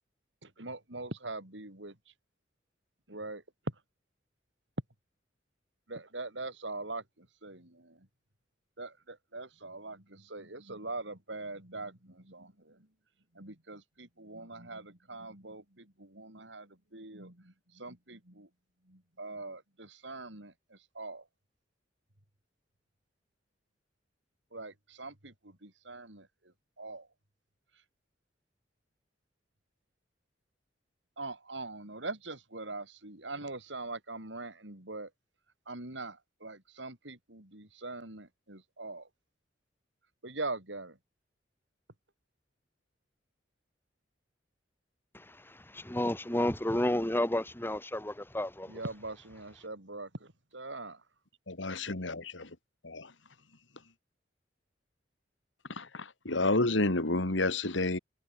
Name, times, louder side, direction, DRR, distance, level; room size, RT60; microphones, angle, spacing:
voice 1, 0.4-2.0 3.1-3.8 5.9-8.1 8.8-12.9 13.3-18.5 18.9-21.3 24.5-26.3 26.8-27.1 31.2-35.1 35.7-39.1 40.2-41.0 48.7-51.0, right 2 dB, 70° right, 5.3 m, -42 dB
voice 2, 45.1-48.8, left 1 dB, 10° left, 2.1 m, -31 dB
voice 3, 51.5-52.6 52.8-53.1 55.7-58.0, left 2 dB, 80° left, 2.6 m, -30 dB
head